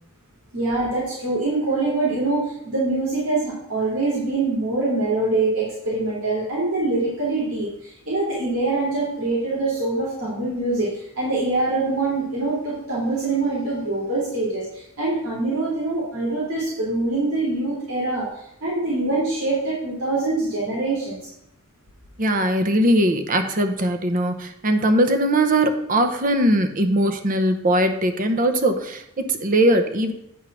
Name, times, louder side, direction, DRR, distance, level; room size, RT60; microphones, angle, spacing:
voice 1, 0.5-18.3 18.6-21.2, right 2 dB, 90° right, -7 dB, 3.0 m, -24 dB
voice 2, 22.2-30.1, right 1 dB, 40° right, 7 dB, 0.8 m, -20 dB
9.3 x 3.7 x 6.0 m, 0.76 s
head